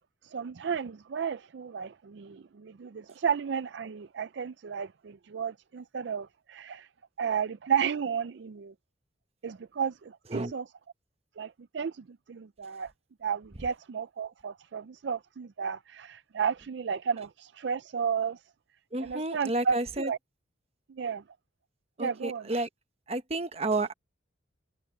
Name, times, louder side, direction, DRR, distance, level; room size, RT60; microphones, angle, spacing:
voice 1, 0.3-6.9 7.2-8.7 9.4-10.6 11.4-12.9 13.2-18.4 19.0-20.2 20.9-21.2 22.0-22.5, right 7 dB, 65° right, 0.4 m, -33 dB
voice 2, 18.9-20.1 22.0-22.7 23.1-23.9, right 2 dB, 30° right, 1.0 m, -31 dB
head